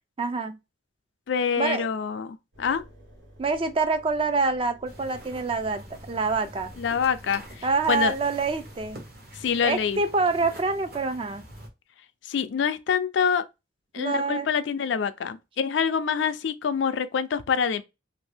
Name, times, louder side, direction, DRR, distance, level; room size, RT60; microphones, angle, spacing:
voice 1, 0.2-0.6 1.6-1.9 3.4-6.7 7.6-9.0 9.6-11.4 14.0-14.5, right 4 dB, 30° right, 0.3 m, -26 dB
voice 2, 1.3-2.8 6.8-8.1 9.3-10.0 12.2-13.4 13.9-17.8, left 6 dB, 70° left, 0.4 m, -26 dB
Engine, 2.5-8.9, equal, 75° right, 1.4 m, -51 dB
sound 1, 4.8-11.7, right 1 dB, 50° right, 1.0 m, -46 dB
2.8 x 2.6 x 3.3 m
head